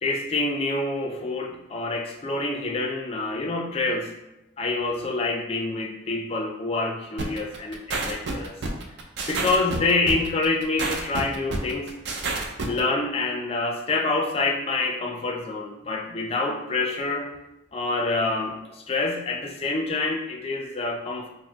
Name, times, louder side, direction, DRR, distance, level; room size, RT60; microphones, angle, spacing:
voice 1, 0.0-4.1 4.6-8.6 9.3-12.0 12.7-17.3 17.7-21.3, left 3 dB, 30° left, 2 dB, 0.3 m, -27 dB
sound 1, 7.2-12.8, right 3 dB, 60° right, 0.4 m, -29 dB
4.0 x 2.0 x 2.8 m, 0.92 s
head